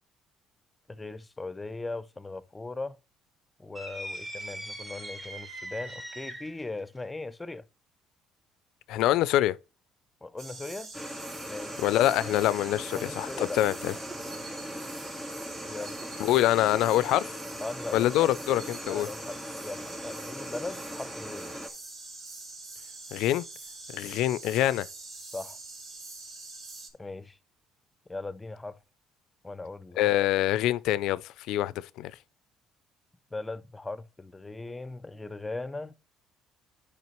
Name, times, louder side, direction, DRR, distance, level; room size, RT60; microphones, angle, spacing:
voice 1, 0.9-3.0 3.6-7.7 10.2-10.9 11.5-11.8 12.9-13.6 15.7-16.0 17.6-18.1 18.9-21.5 25.3-25.6 27.0-27.4 28.1-28.8 29.4-30.0 33.3-36.0, left 2 dB, 15° left, 0.5 m, -39 dB
sound 1, 3.7-6.6, right 1 dB, 25° right, 1.5 m, -40 dB
voice 2, 8.9-9.6 11.8-13.9 16.2-17.3 17.9-19.1 23.1-23.4 23.9-24.9 30.0-32.1, left 14 dB, 80° left, 0.3 m, -25 dB
sound 2, 10.4-26.9, right 3 dB, 55° right, 2.1 m, -44 dB
sound 3, 10.9-21.7, equal, ahead, 1.8 m, -40 dB
9.4 x 4.9 x 3.0 m
cardioid pair, 90°, 0 cm